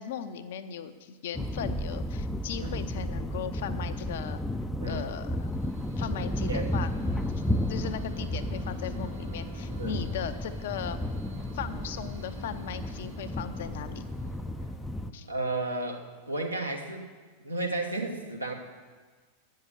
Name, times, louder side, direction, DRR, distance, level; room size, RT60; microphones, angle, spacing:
voice 1, 0.0-4.4 4.8-5.5 6.0-6.9 7.7-11.0 11.5-14.1 15.1-15.3, left 8 dB, 55° left, 10 dB, 0.6 m, -37 dB
sound 1, 1.3-15.1, left 1 dB, 5° left, 0.4 m, -33 dB
sound 2, 5.0-15.3, right 3 dB, 65° right, 2.2 m, -52 dB
voice 2, 15.3-17.1 17.4-18.5, right 2 dB, 85° right, 1 dB, 1.1 m, -33 dB
8.7 x 6.5 x 8.3 m, 1.4 s
figure-of-eight pair, 90°, 0 cm